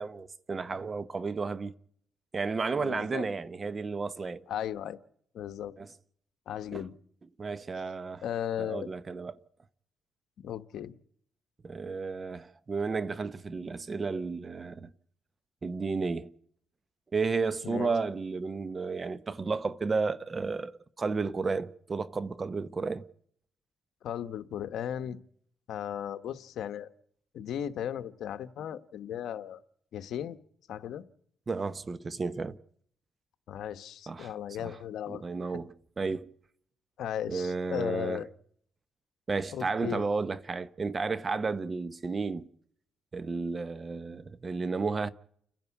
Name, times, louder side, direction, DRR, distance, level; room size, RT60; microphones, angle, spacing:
voice 1, 0.0-1.7 2.3-4.4 5.8-5.9 6.7-6.9 7.4-8.2 8.6-9.4 11.6-14.9 15.6-16.3 17.1-23.0 31.5-32.6 34.1-34.3 34.6-34.8 35.1-36.3 37.3-38.2 39.3-42.5 43.1-45.1, right 4 dB, 35° right, 1.0 m, -32 dB
voice 2, 2.8-3.2 4.5-5.0 5.3-5.7 6.5-6.9 8.2-8.9 10.4-10.9 17.6-17.9 24.0-25.2 25.7-26.9 27.3-29.6 29.9-30.4 30.7-31.0 33.5-35.2 37.0-38.3 39.5-40.0, left 10 dB, 75° left, 1.1 m, -36 dB
29.5 x 10.5 x 8.4 m
cardioid pair, 90°, 0 cm